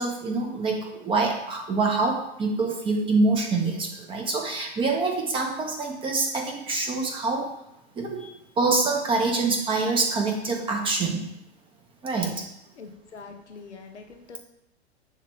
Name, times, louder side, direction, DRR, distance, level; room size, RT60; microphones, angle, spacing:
voice 1, 0.0-7.5 8.0-11.3 12.0-12.4, right 3 dB, 15° right, 1 dB, 0.6 m, -25 dB
voice 2, 12.8-14.4, left 4 dB, 85° left, 4 dB, 0.7 m, -44 dB
6.6 x 3.1 x 2.2 m, 0.83 s
figure-of-eight pair, 105°, 33 cm